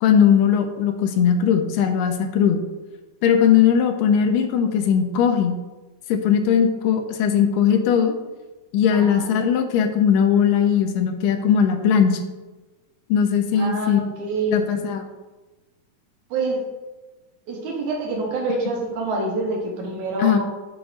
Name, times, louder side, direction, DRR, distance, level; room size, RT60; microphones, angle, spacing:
voice 1, 0.0-2.6 3.2-5.6 6.1-8.1 8.7-12.2 13.1-14.0 14.5-15.0 20.2-20.4, left 8 dB, 85° left, 5 dB, 2.3 m, -19 dB
voice 2, 8.9-9.3 13.5-14.7 16.3-16.7 17.5-20.4, right 2 dB, 65° right, -1 dB, 2.5 m, -26 dB
7.9 x 3.0 x 6.2 m, 1.2 s
omnidirectional pair, 3.9 m